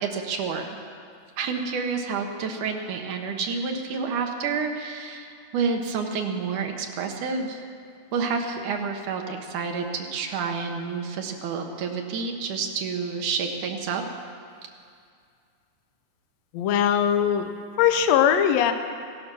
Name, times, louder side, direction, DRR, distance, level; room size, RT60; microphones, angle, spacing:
voice 1, 0.0-0.7 1.4-7.6 8.1-14.0, right 5 dB, 80° right, 3 dB, 2.6 m, -29 dB
voice 2, 16.5-17.5 17.8-18.7, left 9 dB, 75° left, 7 dB, 1.7 m, -20 dB
16.5 x 12.0 x 6.1 m, 2.2 s
omnidirectional pair, 3.5 m